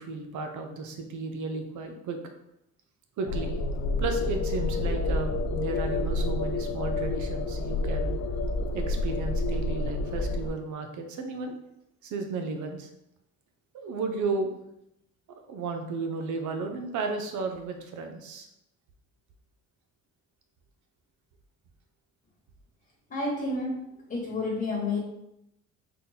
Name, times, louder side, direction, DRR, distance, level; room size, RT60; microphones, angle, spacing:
voice 1, 0.0-2.2 3.2-3.5 4.0-8.1 8.7-11.5 12.0-12.9 13.8-14.6 15.5-18.5, right 4 dB, 75° right, 5 dB, 0.7 m, -33 dB
sound 1, 3.3-10.5, left 2 dB, 65° left, 0.5 m, -29 dB
voice 2, 23.1-23.8 24.1-25.0, left 2 dB, 30° left, -3 dB, 1.2 m, -29 dB
3.8 x 2.2 x 4.0 m, 0.82 s
cardioid pair, 90°, 30 cm